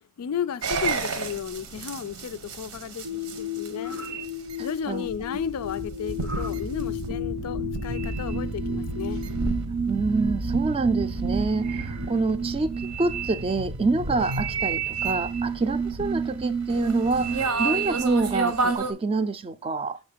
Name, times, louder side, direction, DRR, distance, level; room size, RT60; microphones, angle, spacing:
voice 1, 0.2-3.1 3.4-4.0 4.6-9.2, left 7 dB, 90° left, 0.4 m, -33 dB
sound 1, 0.6-18.9, right 2 dB, 90° right, 0.9 m, -33 dB
sound 2, 3.0-18.8, right 3 dB, 65° right, 0.6 m, -31 dB
voice 2, 4.6-5.1 9.9-20.0, right 3 dB, 25° right, 0.3 m, -27 dB
6.2 x 3.6 x 5.0 m
head